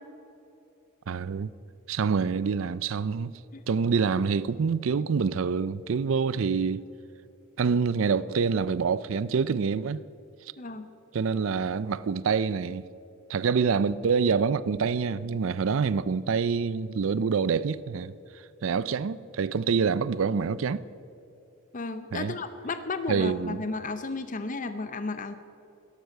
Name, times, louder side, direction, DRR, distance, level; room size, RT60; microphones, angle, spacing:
voice 1, 1.1-1.5 1.9-3.3 3.7-6.9 7.6-10.0 10.4-10.5 11.1-12.8 13.3-18.1 18.6-20.8 22.1-22.3 23.1-23.6, right 5 dB, 65° right, 0.4 m, -26 dB
voice 2, 10.6-10.9 21.7-25.3, left 3 dB, 40° left, 0.7 m, -33 dB
17.0 x 13.0 x 6.6 m
head